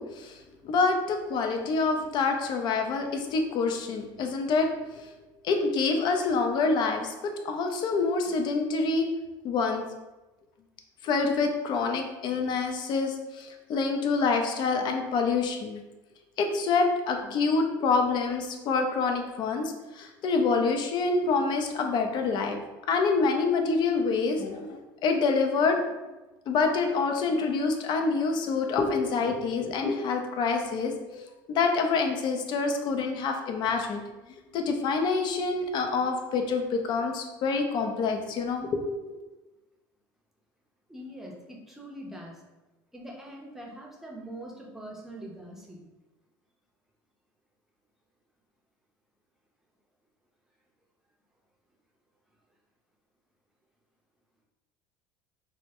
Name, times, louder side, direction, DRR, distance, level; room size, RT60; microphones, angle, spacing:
voice 1, 0.0-4.7 5.4-9.1 9.4-9.8 11.0-15.8 16.4-22.6 22.9-25.8 26.5-34.0 34.5-39.2, left 4 dB, 50° left, 4 dB, 0.4 m, -27 dB
voice 2, 40.9-42.4 42.9-45.9, right 1 dB, 5° right, -2 dB, 0.6 m, -43 dB
2.2 x 2.1 x 2.8 m, 1.1 s
supercardioid pair, 95°, 10 cm